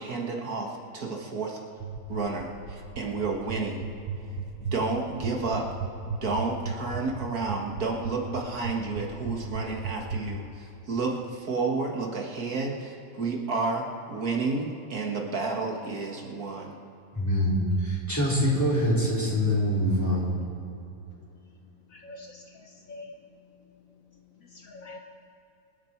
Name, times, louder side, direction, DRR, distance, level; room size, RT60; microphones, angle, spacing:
voice 1, 0.0-1.6 2.1-3.8 4.6-5.7 6.1-16.7, right 3 dB, 65° right, 0 dB, 2.1 m, -31 dB
sound 1, 1.8-10.2, right 5 dB, 85° right, 1.6 m, -33 dB
voice 2, 17.1-20.3, equal, 10° left, -7 dB, 3.9 m, -24 dB
voice 3, 21.9-23.1 24.1-25.0, left 2 dB, 60° left, 2 dB, 1.4 m, -46 dB
26.0 x 9.7 x 4.6 m, 2.9 s
omnidirectional pair, 1.7 m